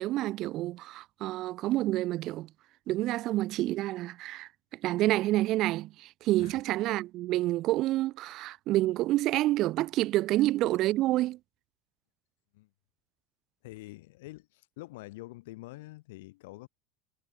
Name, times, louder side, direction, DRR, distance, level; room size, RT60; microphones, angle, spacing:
voice 1, 0.0-2.5 2.9-4.5 4.8-11.4, right 16 dB, 45° right, 0.5 m, -28 dB
voice 2, 13.6-16.7, left 20 dB, 85° left, 4.4 m, -46 dB
cardioid pair, 160°, 0 cm